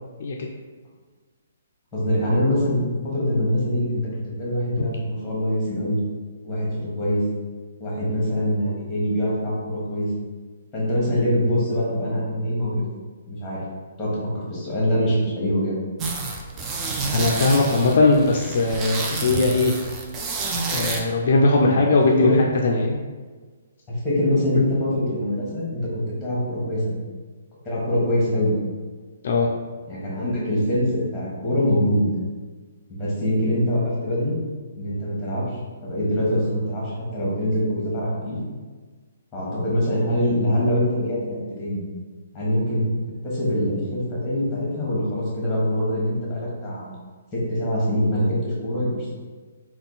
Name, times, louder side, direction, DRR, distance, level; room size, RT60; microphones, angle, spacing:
voice 1, 1.9-6.0 6.4-7.2 7.8-10.1 10.7-12.8 13.3-13.6 14.0-14.2 14.5-15.8 21.6-21.8 22.1-22.6 23.9-27.0 27.6-28.5 29.9-32.1 32.9-34.3 34.7-35.6 35.8-38.4 39.3-41.8 42.3-42.8 43.2-46.9 47.3-49.1, equal, 10° left, -6 dB, 1.3 m, -24 dB
sound 1, 16.0-21.0, right 3 dB, 20° right, 0.4 m, -28 dB
voice 2, 17.1-19.7 20.7-22.3 22.6-23.0 29.2-29.6, left 3 dB, 55° left, -1 dB, 0.4 m, -19 dB
3.7 x 2.3 x 3.9 m, 1.4 s
hypercardioid pair, 160°, 0 cm